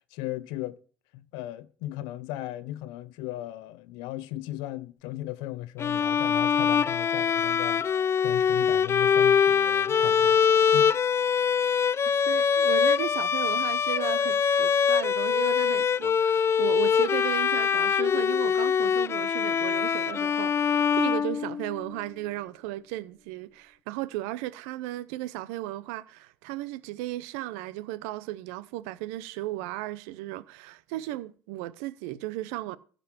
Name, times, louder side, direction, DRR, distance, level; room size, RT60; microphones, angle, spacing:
voice 1, 0.1-0.8 1.1-10.4 10.7-10.9, left 15 dB, 75° left, 0.6 m, -37 dB
Bowed string instrument, 5.8-21.9, left 7 dB, 35° left, 0.4 m, -24 dB
voice 2, 12.3-32.8, right 15 dB, 75° right, 0.7 m, -35 dB
15.0 x 5.4 x 5.8 m
hypercardioid pair, 65°, 8 cm